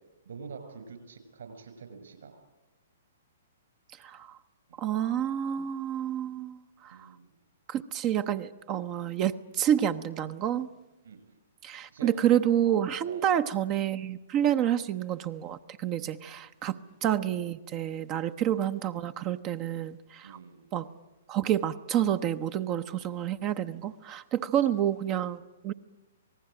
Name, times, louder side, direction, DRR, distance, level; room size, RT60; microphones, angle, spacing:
voice 1, 0.2-2.3 4.7-4.8 6.9-7.4 11.0-11.2 11.9-12.1 13.0-13.4 16.6-16.9 20.2-20.7 24.7-24.8, right 5 dB, 65° right, 8 dB, 6.0 m, -46 dB
voice 2, 4.0-4.4 4.8-7.1 7.7-10.7 11.6-20.4 20.7-20.9 21.3-25.7, right 10 dB, 30° right, 10 dB, 0.8 m, -29 dB
27.0 x 19.0 x 8.9 m, 1.1 s
figure-of-eight pair, 115°, 0 cm